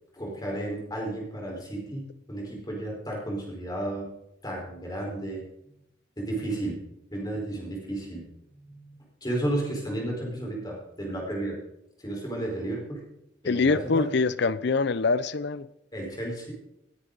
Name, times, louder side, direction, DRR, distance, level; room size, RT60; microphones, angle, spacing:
voice 1, 0.1-4.1 4.4-5.4 6.2-6.8 7.1-8.2 8.5-11.6 12.0-13.0 13.4-14.1 15.9-16.5, right 1 dB, 20° left, 4.6 m, -33 dB
voice 2, 13.4-15.7, left 4 dB, 60° left, 0.5 m, -24 dB
19.5 x 9.7 x 4.0 m
head